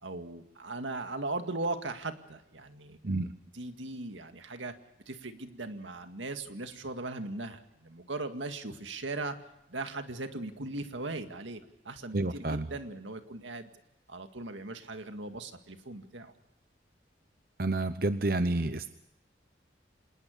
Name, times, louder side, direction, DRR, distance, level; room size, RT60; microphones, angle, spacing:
voice 1, 0.0-3.0 3.5-4.7 5.1-9.4 9.7-13.7 14.1-16.3, right 2 dB, 85° right, 7 dB, 2.1 m, -38 dB
voice 2, 12.1-12.7 17.6-18.9, right 2 dB, 50° right, 10 dB, 0.8 m, -29 dB
26.5 x 19.5 x 6.7 m, 0.83 s
head